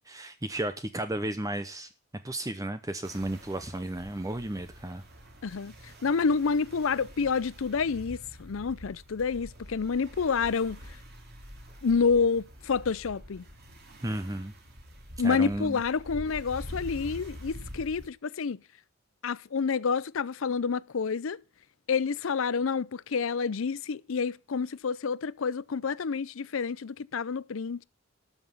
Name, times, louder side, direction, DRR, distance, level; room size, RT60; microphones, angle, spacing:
voice 1, 0.1-1.9 2.2-5.0 14.0-14.5 15.2-15.8, right 1 dB, 15° right, 0.7 m, -33 dB
sound 1, 3.0-18.1, equal, 50° right, 3.1 m, -46 dB
voice 2, 5.4-10.8 11.8-13.4 15.2-18.6 19.2-21.4 21.9-27.8, left 5 dB, 70° left, 0.5 m, -28 dB
12.5 x 6.0 x 7.1 m
head